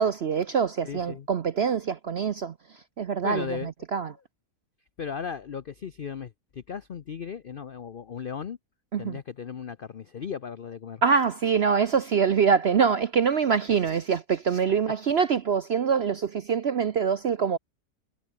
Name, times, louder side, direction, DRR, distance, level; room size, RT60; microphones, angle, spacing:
voice 1, 0.0-2.5 3.0-4.1 8.9-9.2 11.0-17.6, right 6 dB, 60° right, 0.7 m, -24 dB
voice 2, 0.8-1.3 3.2-3.7 5.0-8.6 9.0-11.0, left 7 dB, 70° left, 0.5 m, -36 dB
omnidirectional pair, 1.8 m